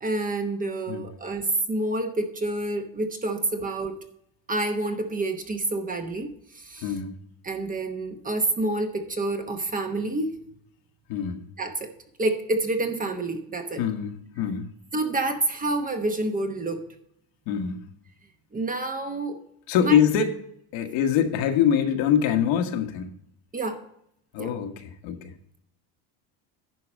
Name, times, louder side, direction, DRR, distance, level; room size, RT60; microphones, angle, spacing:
voice 1, 0.0-4.0 4.5-6.9 7.4-10.4 11.6-11.9 12.2-13.8 14.9-16.8 18.5-19.4 19.8-20.0 23.5-23.8 24.4-24.5, right 2 dB, 20° right, 6 dB, 0.9 m, -28 dB
voice 2, 6.8-7.2 11.1-11.4 13.8-14.7 17.5-17.8 19.7-20.4 20.7-23.1 24.3-25.3, left 8 dB, 75° left, 5 dB, 1.6 m, -24 dB
11.0 x 4.8 x 6.4 m, 0.72 s
cardioid pair, 140°, 45 cm